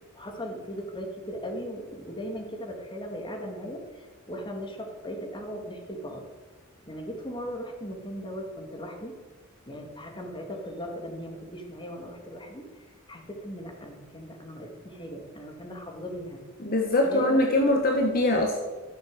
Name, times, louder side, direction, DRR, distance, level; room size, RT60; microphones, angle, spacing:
voice 1, 0.1-3.8 4.3-6.3 6.9-9.1 9.7-12.6 13.1-16.4 17.0-17.4 17.7-17.8, equal, 25° left, 1 dB, 2.3 m, -38 dB
voice 2, 16.6-18.6, left 1 dB, 45° left, 2 dB, 1.3 m, -23 dB
13.0 x 7.3 x 7.7 m, 1.3 s
head